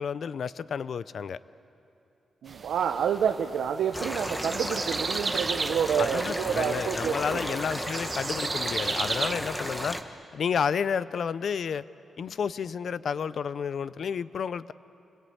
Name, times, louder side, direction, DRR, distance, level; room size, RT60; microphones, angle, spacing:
voice 1, 0.0-1.4 6.0-10.0 10.3-11.8 12.2-14.7, left 7 dB, 55° left, 17 dB, 0.5 m, -31 dB
voice 2, 2.4-7.6, right 8 dB, 90° right, 5 dB, 0.8 m, -28 dB
sound 1, 2.5-9.3, right 4 dB, 30° right, 0.5 m, -35 dB
sound 2, 3.9-10.0, equal, 5° left, 1.1 m, -34 dB
28.5 x 21.5 x 8.5 m, 2.8 s
wide cardioid pair, 160°, 0 cm